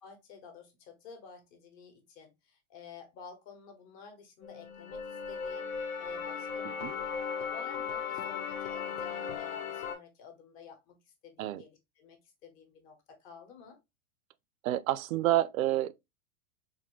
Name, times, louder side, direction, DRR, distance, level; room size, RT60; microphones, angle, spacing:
voice 1, 0.0-7.0 7.5-11.0 11.2-13.8, left 5 dB, 35° left, 1.0 m, -52 dB
sound 1, 4.4-9.9, left 6 dB, 65° left, 0.9 m, -37 dB
voice 2, 14.6-15.9, right 14 dB, 70° right, 0.5 m, -29 dB
4.3 x 2.6 x 2.9 m
supercardioid pair, 170°, 43 cm